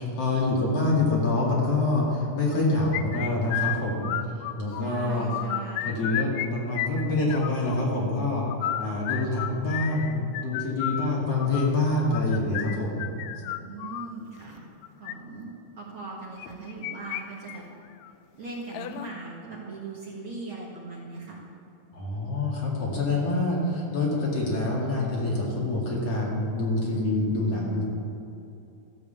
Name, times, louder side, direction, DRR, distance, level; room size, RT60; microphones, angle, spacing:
voice 1, 0.0-5.3 5.8-8.5 8.8-13.1 21.9-27.8, left 2 dB, 55° left, -4 dB, 3.2 m, -26 dB
sound 1, 2.9-4.8 5.2-6.5 6.7-7.8 8.4-14.1 14.8-15.1 16.4-17.2 17.5-17.6 18.0-18.1 18.7-19.1, left 13 dB, 80° left, 1.6 m, -32 dB
voice 2, 4.7-6.0 13.5-14.6 15.0-17.6 18.4-21.4, right 3 dB, 50° right, -4 dB, 2.1 m, -39 dB
13.5 x 7.9 x 7.2 m, 2.8 s
omnidirectional pair, 3.5 m